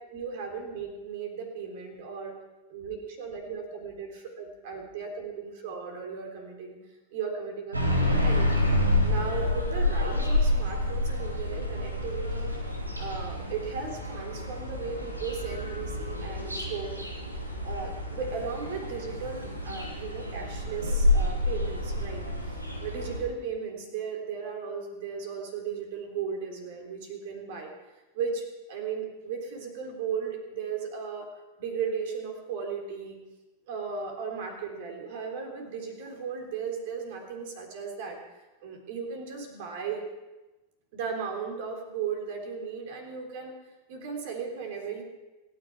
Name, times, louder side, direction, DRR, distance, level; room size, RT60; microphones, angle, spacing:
voice 1, 0.0-2.4 2.7-6.8 7.1-8.6 9.0-12.5 13.0-17.4 17.6-27.7 28.1-31.3 31.6-33.2 33.7-38.2 38.6-40.0 40.9-43.6 43.9-45.0, right 6 dB, 50° right, 3 dB, 3.7 m, -36 dB
sound 1, 7.7-23.2, left 1 dB, 85° right, 2.7 m, -28 dB
27.5 x 10.0 x 4.8 m, 1.1 s
figure-of-eight pair, 90°, 0 cm